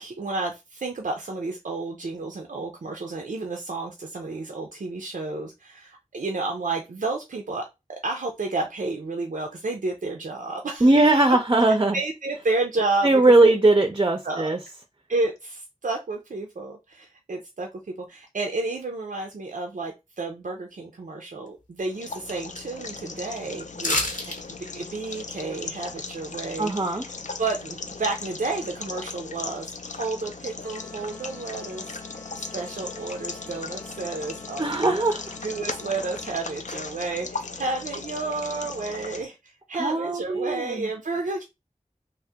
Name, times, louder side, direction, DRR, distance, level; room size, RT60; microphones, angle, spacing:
voice 1, 0.0-10.9 11.9-13.5 14.2-14.5 15.1-17.8 18.1-24.1 24.6-27.1 27.4-32.0 32.4-35.0 35.4-41.4, right 3 dB, 90° right, 0.4 m, -31 dB
voice 2, 10.8-12.0 13.0-14.6 26.6-27.1 34.6-35.4 39.8-40.9, right 2 dB, 35° right, 0.4 m, -20 dB
sound 1, 21.8-39.2, left 4 dB, 65° left, 0.4 m, -38 dB
sound 2, 23.8-24.4 24.7-24.8, left 2 dB, 85° left, 0.9 m, -26 dB
sound 3, 30.6-36.6, left 3 dB, 15° left, 0.5 m, -46 dB
2.8 x 2.0 x 3.4 m
wide cardioid pair, 40°, 13 cm